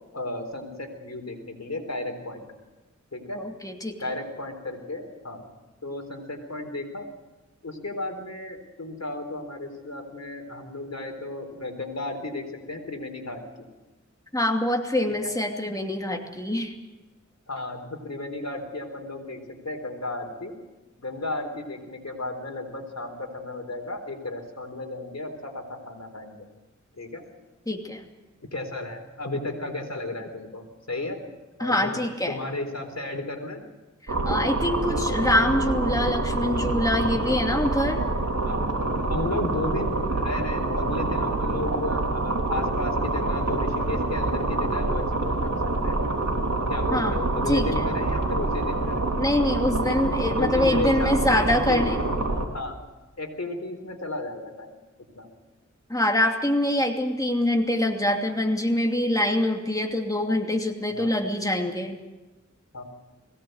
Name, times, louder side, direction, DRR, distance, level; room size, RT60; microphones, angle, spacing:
voice 1, 0.1-2.4 3.1-3.4 4.0-5.4 5.8-7.1 7.6-13.4 15.2-15.3 17.5-20.5 21.0-26.4 27.0-27.2 28.5-31.2 31.6-31.8 32.3-33.6 38.4-38.7 39.1-45.5 45.8-46.0 46.7-49.0 50.4-51.9 52.5-52.8 53.2-54.7 55.2-55.3 60.9-61.1 62.7-62.8, left 2 dB, 60° left, 4 dB, 4.0 m, -34 dB
voice 2, 3.3-4.0 14.3-16.7 27.7-28.0 31.6-32.4 34.1-38.0 46.9-47.2 47.5-47.8 49.2-52.0 55.9-62.0, left 1 dB, 10° left, 2 dB, 2.7 m, -25 dB
sound 1, 34.1-52.5, right 2 dB, 65° right, 3.6 m, -26 dB
22.0 x 17.5 x 8.0 m, 1.1 s
wide cardioid pair, 55°, 30 cm